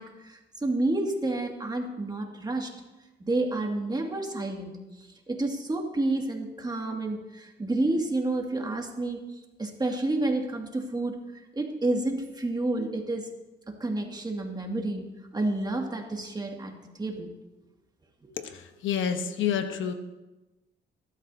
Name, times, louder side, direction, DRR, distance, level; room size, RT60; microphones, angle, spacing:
voice 1, 0.0-2.7 3.2-4.8 5.3-9.2 9.6-11.2 11.5-13.3 13.7-17.3 18.2-18.3, right 2 dB, 20° right, 1 dB, 2.1 m, -30 dB
voice 2, 18.8-19.9, left 8 dB, 75° left, 7 dB, 1.2 m, -28 dB
19.5 x 12.5 x 2.8 m, 1.1 s
cardioid pair, 90°, 20 cm